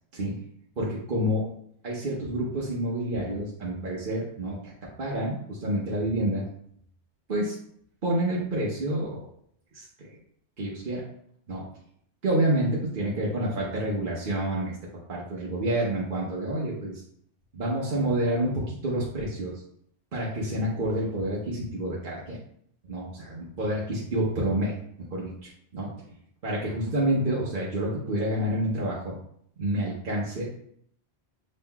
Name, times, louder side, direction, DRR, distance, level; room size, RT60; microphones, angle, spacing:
voice 1, 0.8-1.4 1.8-6.4 7.3-7.6 8.0-9.2 9.7-9.9 10.6-11.0 11.5-11.6 12.2-14.7 15.1-16.9 17.5-19.5 20.1-22.4 22.9-24.8 25.1-25.9 26.4-29.1 29.6-30.5, right 1 dB, 50° right, -4 dB, 1.1 m, -28 dB
7.3 x 3.1 x 2.3 m, 0.66 s
omnidirectional pair, 1.1 m